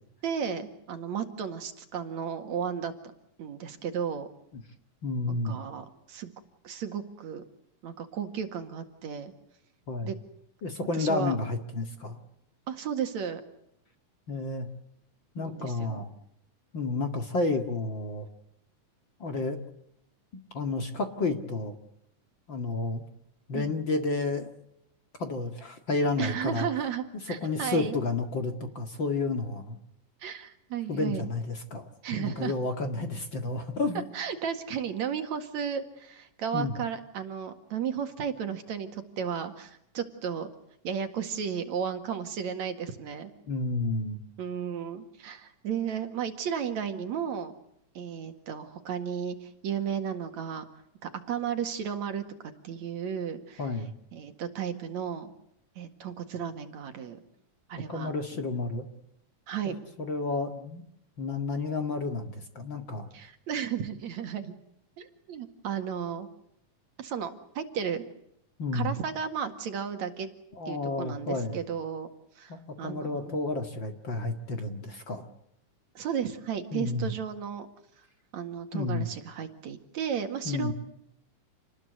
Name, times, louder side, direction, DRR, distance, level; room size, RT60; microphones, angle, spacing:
voice 1, 0.2-2.9 3.4-4.3 5.3-6.3 6.6-7.4 7.8-9.3 10.0-10.2 10.9-11.4 12.7-13.4 15.4-16.0 23.5-23.7 26.2-28.0 30.2-31.3 32.0-32.5 34.1-40.5 40.8-43.3 44.4-47.5 47.9-50.6 51.0-52.2 52.6-53.6 54.1-55.3 55.8-57.2 57.7-58.1 59.5-59.8 63.1-64.5 65.0-66.3 67.0-68.0 68.7-70.3 70.7-72.1 72.4-73.3 75.9-77.7 78.3-80.7, right 7 dB, 65° right, 7 dB, 3.2 m, -34 dB
voice 2, 5.0-5.6 9.9-10.1 10.6-12.2 14.3-14.7 15.3-16.1 16.7-18.3 19.2-19.6 20.5-21.7 22.5-23.0 23.5-24.5 25.2-26.7 27.4-29.8 30.9-31.9 32.1-34.1 36.5-36.7 43.5-44.2 53.6-53.9 57.9-58.9 59.6-60.8 61.2-63.1 68.6-68.9 70.6-71.6 72.5-75.3 76.7-77.1 78.7-79.1 80.4-80.7, left 3 dB, 40° left, 7 dB, 2.4 m, -31 dB
28.5 x 20.0 x 8.0 m, 0.78 s
omnidirectional pair, 3.6 m